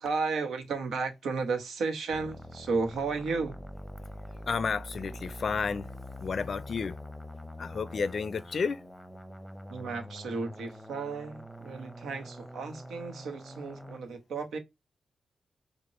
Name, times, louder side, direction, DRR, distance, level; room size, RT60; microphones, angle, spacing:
voice 1, 0.0-3.6 9.7-14.6, right 4 dB, 90° right, 1.0 m, -33 dB
sound 1, 2.1-14.0, equal, 5° right, 0.8 m, -45 dB
voice 2, 4.5-5.9 6.2-7.0 7.6-8.8, left 5 dB, 55° left, 0.5 m, -31 dB
5.2 x 2.2 x 3.0 m
cardioid pair, 85°, 0 cm